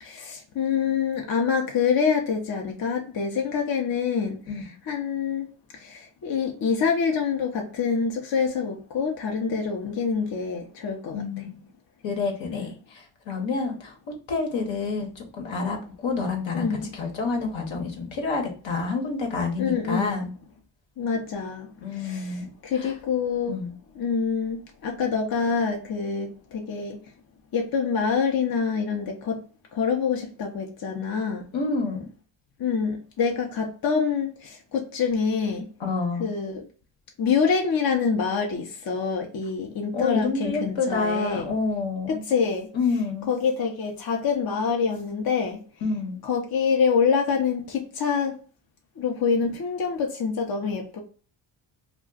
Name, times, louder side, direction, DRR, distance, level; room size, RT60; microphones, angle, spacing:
voice 1, 0.0-4.4 4.9-5.5 5.8-11.2 12.5-12.7 16.5-16.9 19.6-20.1 21.0-21.7 22.0-23.6 24.0-27.0 27.5-29.4 29.7-31.4 32.6-35.6 36.2-36.6 37.2-41.5 42.1-42.7 43.3-45.6 46.2-48.3 49.0-51.0, left 6 dB, 50° left, 0.7 m, -26 dB
voice 2, 11.1-11.6 12.0-13.9 14.3-20.3 21.8-22.9 23.5-23.7 31.5-32.1 35.8-36.3 39.9-42.2 42.7-43.3 45.8-46.2, left 4 dB, 70° left, 1.1 m, -28 dB
2.3 x 2.3 x 3.8 m
cardioid pair, 70°, 48 cm